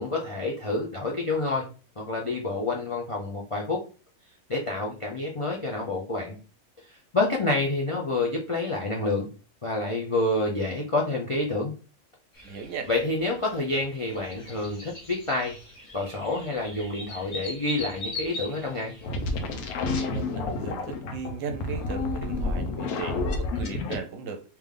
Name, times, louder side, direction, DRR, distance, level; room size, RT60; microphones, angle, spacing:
voice 1, 0.0-1.7 2.0-3.8 4.5-6.4 6.9-9.3 9.6-11.7 12.9-15.6 15.9-18.9, left 2 dB, 55° left, 0.3 m, -28 dB
sound 1, 12.3-19.6, left 1 dB, 35° left, 1.3 m, -41 dB
voice 2, 12.4-12.9 19.8-24.4, right 5 dB, 70° right, 0.9 m, -37 dB
sound 2, 19.0-24.0, left 3 dB, 85° left, 1.2 m, -30 dB
3.4 x 2.9 x 3.6 m
omnidirectional pair, 1.5 m